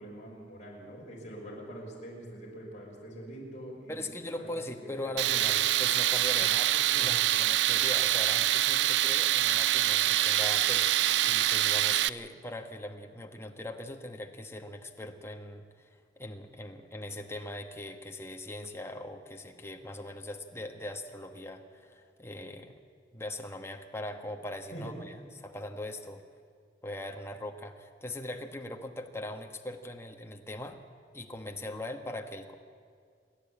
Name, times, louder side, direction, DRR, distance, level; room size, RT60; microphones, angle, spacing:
voice 1, 0.0-4.1 4.4-4.5 4.8-5.6 6.8-7.2 24.7-25.2, right 1 dB, 40° left, -3 dB, 5.8 m, -44 dB
voice 2, 3.9-11.0 11.2-22.8 23.1-26.2 26.8-30.8 31.1-32.5, left 1 dB, 15° left, 4 dB, 1.3 m, -41 dB
Tools, 5.2-12.1, right 13 dB, 75° right, 0.4 m, -25 dB
28.0 x 11.0 x 8.6 m, 2.2 s
head